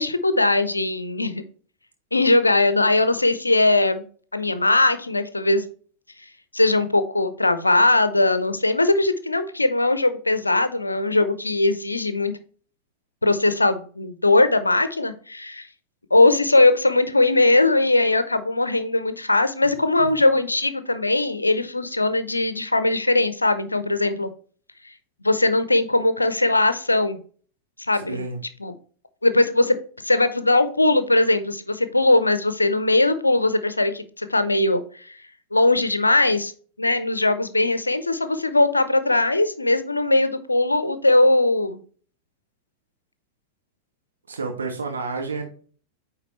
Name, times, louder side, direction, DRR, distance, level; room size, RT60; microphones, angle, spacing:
voice 1, 0.0-1.4 2.1-4.0 4.3-5.6 6.5-12.3 13.2-15.7 16.1-24.3 25.2-27.2 27.9-28.2 28.6-28.7 29.2-29.8 30.0-34.8 35.1-35.2 35.5-36.5 36.8-41.8, left 2 dB, 80° left, 12 dB, 0.6 m, -20 dB
voice 2, 27.9-28.4 44.3-45.4, right 4 dB, 70° right, 3 dB, 1.2 m, -30 dB
9.0 x 3.7 x 3.1 m, 0.42 s
figure-of-eight pair, 90°, 0 cm